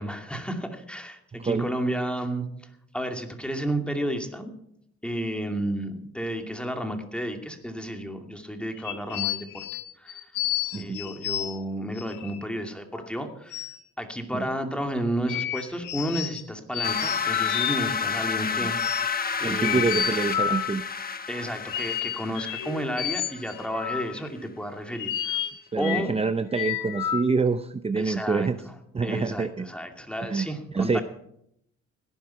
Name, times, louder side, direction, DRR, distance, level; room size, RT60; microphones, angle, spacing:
voice 1, 0.0-4.5 5.0-10.2 10.8-13.7 14.0-18.8 19.4-19.8 21.3-25.4 25.8-26.1 28.0-28.7 29.0-31.0, equal, 5° left, 4 dB, 2.5 m, -32 dB
sound 1, 8.8-11.6 12.0-12.4 12.9-13.0 13.5-13.8 15.3-16.4 16.7-18.1 18.8-19.2 19.5-20.8 21.7-24.3 24.9-26.1 26.5-27.2, left 10 dB, 90° left, 1.5 m, -31 dB
sound 2, 16.8-23.6, left 6 dB, 30° left, 1.2 m, -30 dB
voice 2, 19.4-20.8 25.7-28.6 28.9-29.7 30.2-31.0, right 4 dB, 20° right, 11 dB, 0.6 m, -26 dB
17.0 x 11.0 x 5.8 m, 0.73 s
cardioid pair, 90°, 30 cm